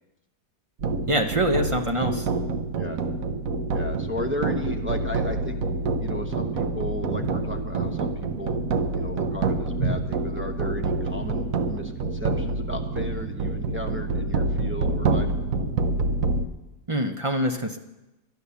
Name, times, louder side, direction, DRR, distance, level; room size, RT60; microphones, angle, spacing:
sound 1, 0.8-16.5, right 3 dB, 60° right, 1.2 m, -27 dB
voice 1, 1.1-2.3 16.9-17.8, right 1 dB, 45° right, 4 dB, 0.4 m, -24 dB
voice 2, 3.7-5.6 6.0-8.7 8.9-15.3, left 1 dB, 10° right, 2 dB, 0.7 m, -35 dB
Walk footsteps, 7.0-11.5, right 2 dB, 85° right, 5.1 m, -33 dB
12.0 x 11.0 x 6.9 m, 1.0 s
omnidirectional pair, 1.7 m